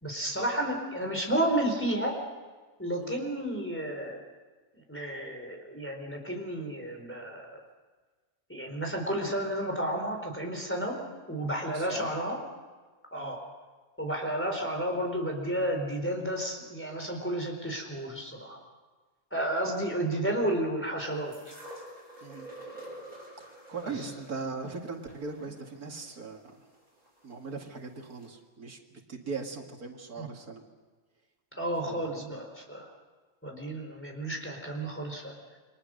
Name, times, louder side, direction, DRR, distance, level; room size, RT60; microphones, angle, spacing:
voice 1, 0.0-2.1 2.8-4.2 4.9-7.6 8.5-10.9 11.3-12.4 13.1-13.4 14.0-18.6 19.3-21.5 23.8-23.9 30.2-30.3 31.5-32.9 33.4-35.6, right 1 dB, 10° left, 1 dB, 4.4 m, -32 dB
voice 2, 11.7-12.1 13.2-13.4 22.2-22.5 23.4-26.6 27.2-30.7 31.8-32.4, right 4 dB, 85° right, 3 dB, 2.6 m, -40 dB
sound 1, 21.3-27.4 28.2-28.3, right 1 dB, 25° right, 6.9 m, -48 dB
29.0 x 23.5 x 6.5 m, 1.4 s
omnidirectional pair, 1.5 m